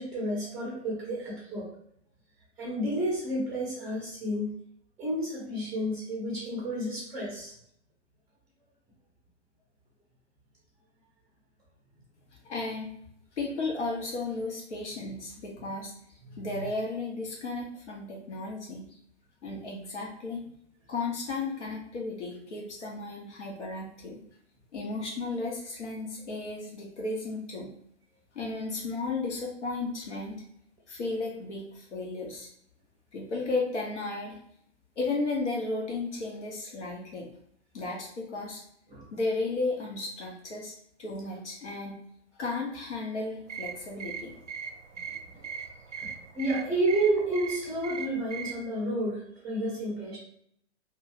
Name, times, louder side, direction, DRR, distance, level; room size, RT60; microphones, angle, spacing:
voice 1, 0.0-1.7 2.6-4.6 5.0-7.5 38.9-39.0 46.3-50.2, right 1 dB, 10° right, -6 dB, 0.6 m, -30 dB
voice 2, 12.4-12.9 13.4-15.9 16.4-18.9 19.4-20.4 20.9-24.2 24.7-27.7 28.3-30.4 30.9-32.5 33.1-34.4 35.0-37.3 37.7-38.6 39.1-40.7 41.0-42.0 42.4-44.3, left 3 dB, 70° left, -1 dB, 0.9 m, -34 dB
sound 1, 43.5-48.6, right 6 dB, 85° right, 0.5 m, -40 dB
2.6 x 2.3 x 3.0 m, 0.69 s
figure-of-eight pair, 115°, 36 cm